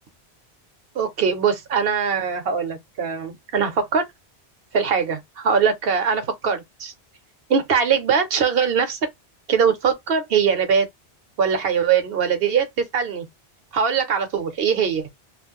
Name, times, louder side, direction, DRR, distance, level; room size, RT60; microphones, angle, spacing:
voice 1, 0.9-4.0 4.7-6.9 7.5-9.0 9.5-10.9 11.4-13.3 13.7-15.1, right 6 dB, 65° right, 1.0 m, -21 dB
2.4 x 2.1 x 3.5 m
omnidirectional pair, 1.1 m